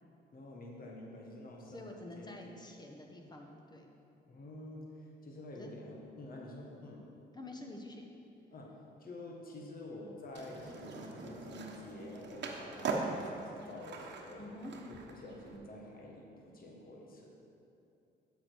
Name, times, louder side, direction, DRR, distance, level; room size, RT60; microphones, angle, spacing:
voice 1, 0.3-2.5 4.3-7.1 8.5-14.5 14.9-17.4, left 1 dB, 45° left, -1 dB, 1.4 m, -48 dB
voice 2, 1.7-3.9 5.6-5.7 7.3-8.1 14.4-14.7, left 1 dB, 20° left, 2 dB, 1.2 m, -48 dB
Skateboard, 10.3-15.6, right 3 dB, 60° right, 1.2 m, -41 dB
8.3 x 7.4 x 4.6 m, 2.7 s
cardioid pair, 90°, 20 cm